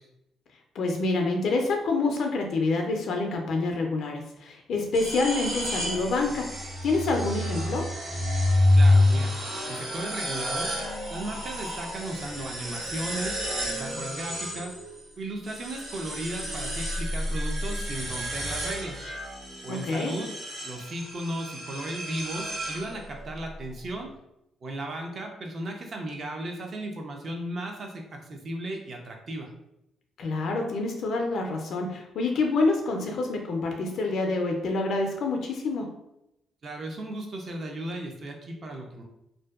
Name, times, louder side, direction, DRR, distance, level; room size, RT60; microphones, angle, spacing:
voice 1, 0.7-6.5 6.8-7.9 19.7-20.1 30.2-35.9, left 3 dB, 70° left, 2 dB, 0.4 m, -27 dB
sound 1, 4.9-15.1 15.4-23.3, left 1 dB, 80° right, 1.0 m, -29 dB
voice 2, 8.7-9.4 9.7-10.7 11.1-13.4 13.6-14.7 15.2-19.0 19.6-20.3 20.6-24.1 24.6-29.5 36.6-39.0, right 1 dB, 50° right, 2 dB, 0.5 m, -35 dB
2.5 x 2.1 x 2.3 m, 0.83 s
cardioid pair, 90°, 0 cm